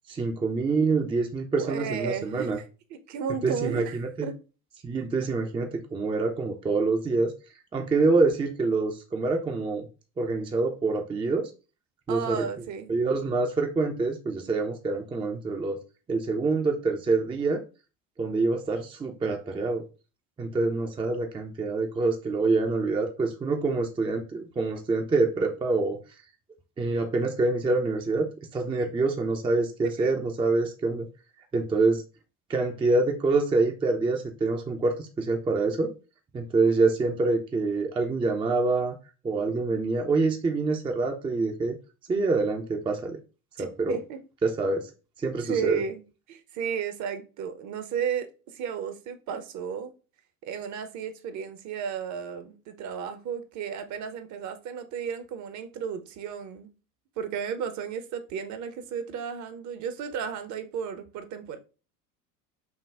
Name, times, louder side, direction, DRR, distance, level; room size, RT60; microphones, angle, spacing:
voice 1, 0.1-2.6 3.4-4.3 4.8-7.3 7.7-9.8 10.2-11.5 12.1-12.4 12.9-15.8 16.1-17.6 18.2-19.8 20.4-26.0 26.8-31.1 31.5-32.0 32.5-35.9 36.3-39.0 39.2-41.8 42.1-43.2 43.6-44.0 44.4-44.9 45.2-45.8, right 3 dB, 10° right, 0.5 m, -26 dB
voice 2, 1.6-2.5 2.9-4.4 12.1-12.9 30.0-30.3 43.6-44.2 45.5-46.0 46.3-49.9 50.4-56.7 57.2-61.6, right 7 dB, 40° right, 0.8 m, -33 dB
6.0 x 2.3 x 3.4 m
figure-of-eight pair, 75°, 47 cm